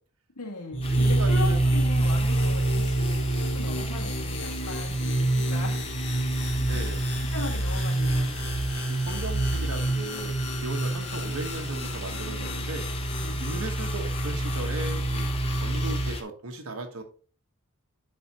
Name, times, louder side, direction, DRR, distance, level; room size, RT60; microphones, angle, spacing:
voice 1, 0.3-5.8 6.3-6.8 7.3-8.4 13.2-13.4, left 2 dB, 90° left, 0 dB, 2.0 m, -38 dB
sound 1, 0.7-16.1, right 1 dB, 55° left, 2.0 m, -27 dB
sound 2, 0.8-16.2, left 4 dB, 25° left, 0.8 m, -41 dB
voice 2, 0.9-1.6 6.6-7.0 8.9-12.9 13.4-15.3 15.6-17.0, right 2 dB, 65° right, 4 dB, 1.2 m, -37 dB
11.0 x 4.2 x 2.9 m, 0.39 s
head